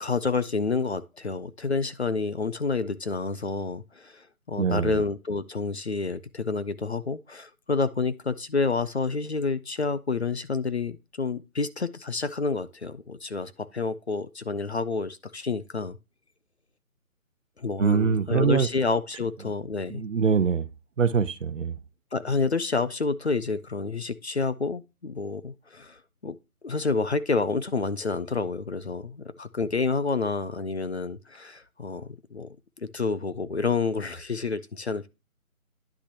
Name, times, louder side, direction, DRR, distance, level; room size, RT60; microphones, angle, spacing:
voice 1, 0.0-16.0 17.6-20.0 22.1-26.4 26.6-32.5 32.8-35.1, left 4 dB, 50° left, 0.5 m, -29 dB
voice 2, 4.6-5.0 17.8-18.7 19.9-20.7 21.0-21.7, right 6 dB, 55° right, 0.7 m, -23 dB
10.0 x 5.9 x 2.8 m
figure-of-eight pair, 170°, 44 cm